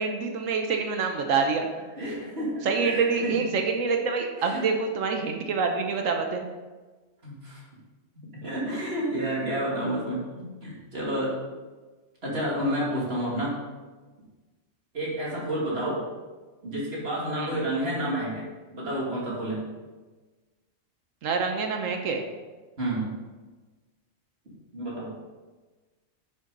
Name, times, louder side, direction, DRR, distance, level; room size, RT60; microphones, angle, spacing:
voice 1, 0.0-1.9 2.6-6.5 17.4-17.5 21.2-22.2, right 4 dB, 80° right, 4 dB, 1.2 m, -26 dB
voice 2, 2.0-3.4 4.4-4.7 7.2-7.6 8.2-11.4 12.2-13.6 14.9-16.0 16.6-19.6 22.8-23.1 24.7-25.1, right 1 dB, 50° right, -5 dB, 2.9 m, -30 dB
10.0 x 6.5 x 3.9 m, 1.3 s
omnidirectional pair, 1.3 m